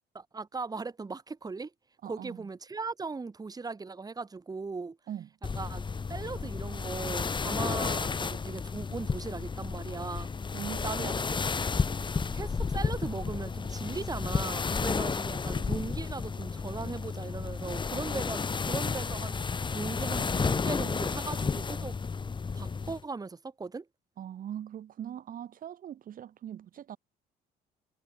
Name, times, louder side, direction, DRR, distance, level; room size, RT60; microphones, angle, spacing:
voice 1, 0.1-1.7 2.0-5.0 5.6-5.8 6.1-10.3 10.8-11.1 12.3-19.4 19.7-22.0 22.5-23.9, right 4 dB, 20° right, 5.8 m, -38 dB
voice 2, 2.0-2.5 5.1-5.3 10.5-11.1 24.2-27.0, right 10 dB, 55° right, 5.3 m, -41 dB
sound 1, 5.4-23.0, left 5 dB, 30° left, 8.0 m, -32 dB
cardioid pair, 110°, 17 cm